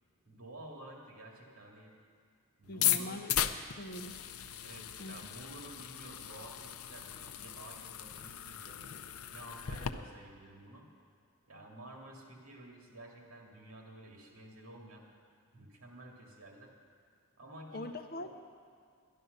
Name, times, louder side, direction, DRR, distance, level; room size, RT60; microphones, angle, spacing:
voice 1, 0.3-1.9 2.6-3.2 4.6-8.8 9.3-10.9 11.5-15.1 15.5-16.7 17.4-18.3, right 1 dB, 70° right, 0 dB, 2.3 m, -51 dB
sound 1, 2.7-9.9, left 10 dB, 80° left, 0.6 m, -37 dB
voice 2, 2.7-3.3 3.8-4.2 5.0-5.1 17.7-18.3, left 1 dB, 45° left, 6 dB, 0.8 m, -42 dB
11.0 x 11.0 x 6.6 m, 2.1 s
head